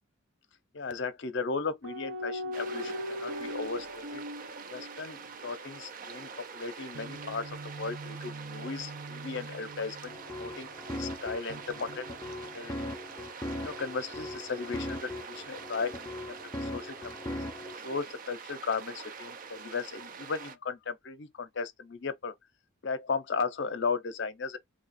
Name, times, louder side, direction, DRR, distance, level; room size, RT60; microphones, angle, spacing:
voice 1, 0.7-4.2 4.7-12.1 12.4-13.0 13.6-17.4 17.8-22.3 22.8-24.6, left 4 dB, 60° left, 0.6 m, -36 dB
sound 1, 1.8-5.5 6.9-10.7 11.5-12.7, equal, 70° right, 0.8 m, -41 dB
sound 2, 2.5-20.6, right 5 dB, 40° right, 0.4 m, -45 dB
sound 3, 10.1-17.7, left 1 dB, 15° left, 0.5 m, -39 dB
3.2 x 2.4 x 4.0 m
head